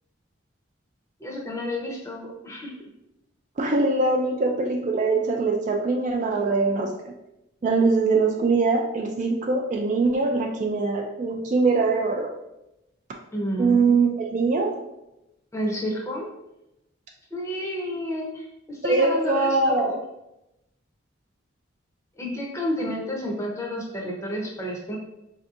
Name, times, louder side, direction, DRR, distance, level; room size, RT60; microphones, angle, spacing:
voice 1, 1.2-2.9 13.3-13.9 15.5-16.3 17.3-20.0 22.2-25.0, equal, 15° left, -2 dB, 0.6 m, -30 dB
voice 2, 3.6-6.9 7.6-12.3 13.6-14.8 18.8-20.0, right 3 dB, 40° right, 2 dB, 0.3 m, -22 dB
4.3 x 2.7 x 2.4 m, 0.88 s
head